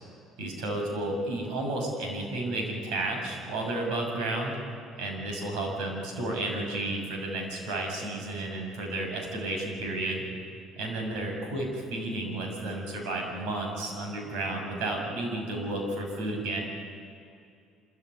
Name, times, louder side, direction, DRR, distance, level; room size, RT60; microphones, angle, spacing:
voice 1, 0.4-4.6 5.0-10.2 10.8-16.6, right 2 dB, 80° right, 2 dB, 6.8 m, -32 dB
26.0 x 15.0 x 9.7 m, 2.5 s
cardioid pair, 100°, 0 cm